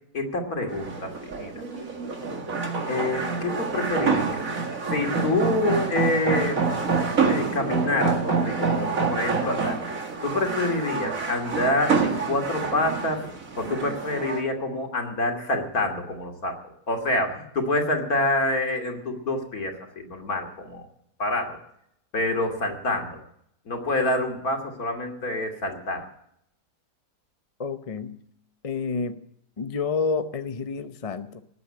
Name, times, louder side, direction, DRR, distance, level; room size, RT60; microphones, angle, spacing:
voice 1, 0.1-1.5 2.9-4.4 4.9-6.9 7.2-9.8 10.2-13.2 13.6-16.6 16.9-20.8 21.2-21.6 22.1-23.2 23.7-26.0, left 2 dB, 60° left, 3 dB, 3.1 m, -27 dB
sound 1, 0.7-14.4, right 5 dB, 55° right, 2.3 m, -27 dB
voice 2, 27.6-28.2 28.6-29.2 29.6-31.4, left 5 dB, 35° left, 10 dB, 0.5 m, -29 dB
19.0 x 8.3 x 8.7 m, 0.72 s
omnidirectional pair, 1.8 m